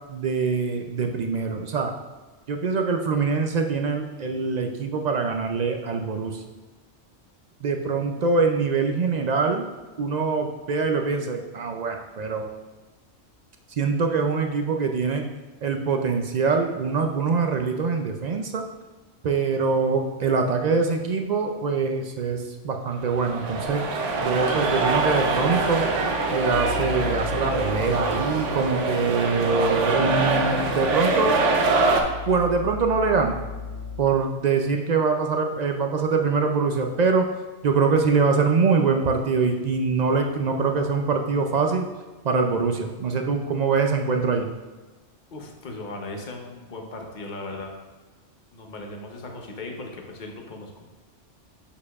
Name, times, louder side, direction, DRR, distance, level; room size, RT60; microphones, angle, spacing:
voice 1, 0.1-1.9 2.5-6.4 7.6-9.7 10.0-12.5 13.7-15.2 15.6-18.6 19.2-23.8 24.2-25.9 26.3-31.4 32.3-33.4 34.0-37.3 37.6-41.9 42.2-44.5, right 4 dB, 65° right, 4 dB, 0.4 m, -24 dB
voice 2, 8.1-8.4 45.3-47.7 48.5-50.8, left 2 dB, 45° left, 2 dB, 1.0 m, -38 dB
sound 1, 23.0-32.0, right 3 dB, 80° right, 1.1 m, -24 dB
sound 2, 24.0-34.0, left 4 dB, 25° left, 2.1 m, -37 dB
7.1 x 6.6 x 2.4 m, 1.3 s
omnidirectional pair, 1.2 m